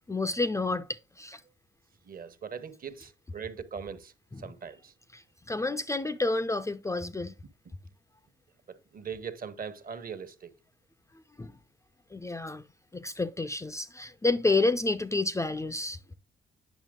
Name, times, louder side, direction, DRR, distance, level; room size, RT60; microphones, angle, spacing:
voice 1, 0.1-1.4 4.3-4.4 5.1-7.3 11.4-11.5 12.1-12.6 12.9-16.0, left 3 dB, 15° left, 0.5 m, -29 dB
voice 2, 2.0-4.9 8.7-10.5, right 6 dB, 45° right, 1.2 m, -41 dB
9.2 x 5.8 x 3.7 m
cardioid pair, 90°, 20 cm